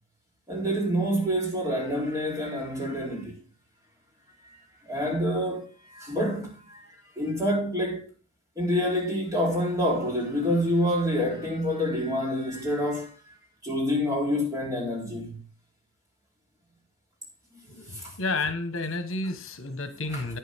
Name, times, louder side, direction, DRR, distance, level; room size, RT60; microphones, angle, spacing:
voice 1, 0.5-3.4 4.9-6.8 7.2-8.1 8.6-13.1 13.6-15.4 17.9-18.1 20.1-20.2, equal, 15° right, 3.6 m, -27 dB
voice 2, 17.7-20.4, left 2 dB, 75° left, 1.4 m, -31 dB
10.5 x 9.4 x 3.6 m
head